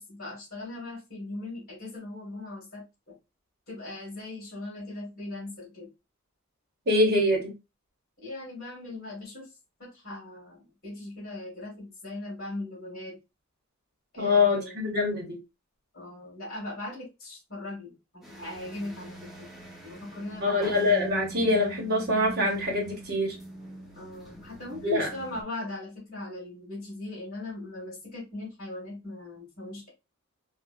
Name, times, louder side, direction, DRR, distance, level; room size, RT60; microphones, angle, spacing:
voice 1, 0.0-3.1 3.7-5.9 8.2-9.5 9.8-13.2 14.1-14.8 15.9-19.5 19.8-20.8 23.9-29.9, left 2 dB, 45° left, -5 dB, 2.0 m, -39 dB
voice 2, 6.9-7.5 14.2-15.4 20.4-23.3 24.8-25.1, left 2 dB, 50° right, -1 dB, 1.4 m, -24 dB
sound 1, 18.2-25.4, right 1 dB, ahead, 1.1 m, -42 dB
3.7 x 2.6 x 2.6 m, 0.25 s
head